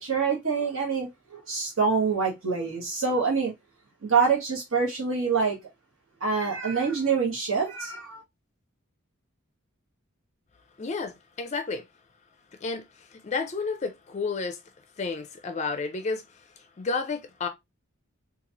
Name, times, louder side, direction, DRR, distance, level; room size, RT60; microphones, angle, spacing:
voice 1, 0.0-3.5 4.0-5.6 6.2-8.2, right 5 dB, 70° right, 1.2 m, -26 dB
voice 2, 10.8-11.8 12.6-14.6 15.0-17.5, left 4 dB, 35° left, 0.4 m, -31 dB
3.9 x 2.4 x 2.8 m
head